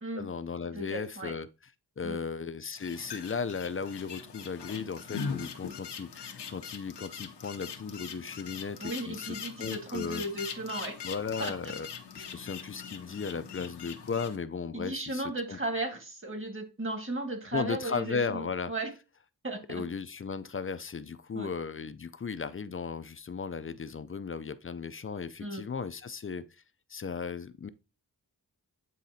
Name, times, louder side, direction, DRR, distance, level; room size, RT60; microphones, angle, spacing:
voice 1, 0.1-1.5 2.0-10.2 11.0-11.9 12.1-15.6 17.5-18.7 19.7-26.4 26.9-27.7, left 5 dB, 35° left, 0.5 m, -36 dB
voice 2, 0.7-1.3 2.0-2.2 8.8-11.0 11.4-11.7 12.2-12.3 14.7-18.9 19.4-19.8 21.3-21.5 25.4-25.7, right 2 dB, 30° right, 1.7 m, -36 dB
sound 1, 2.7-14.4, left 6 dB, 85° left, 0.8 m, -42 dB
9.1 x 3.7 x 2.7 m
cardioid pair, 50°, 40 cm